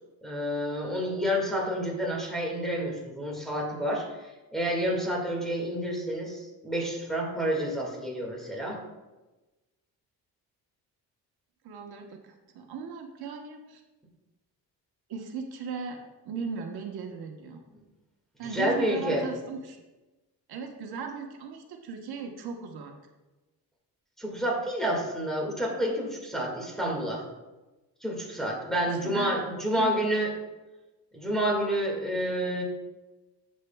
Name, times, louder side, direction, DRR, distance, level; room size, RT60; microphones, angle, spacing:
voice 1, 0.2-8.8 18.5-19.2 24.2-27.2 28.0-30.3 31.1-32.6, equal, ahead, -3 dB, 1.8 m, -29 dB
voice 2, 11.6-13.8 15.1-16.0 16.2-17.6 18.4-19.8 20.5-22.9 29.0-29.4 29.7-29.9, right 5 dB, 75° right, 3 dB, 1.1 m, -37 dB
11.0 x 7.5 x 2.3 m, 1.1 s
cardioid pair, 145°, 38 cm